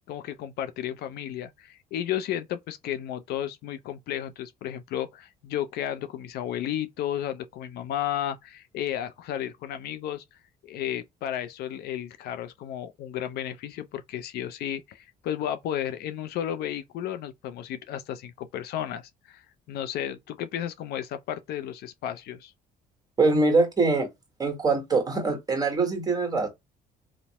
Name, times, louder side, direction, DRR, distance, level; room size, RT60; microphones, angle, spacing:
voice 1, 0.1-10.2 10.6-22.5, left 11 dB, 70° left, 0.4 m, -33 dB
voice 2, 23.2-24.1 24.4-26.5, right 3 dB, 20° right, 1.4 m, -23 dB
2.8 x 2.1 x 2.8 m
cardioid pair, 110°, 17 cm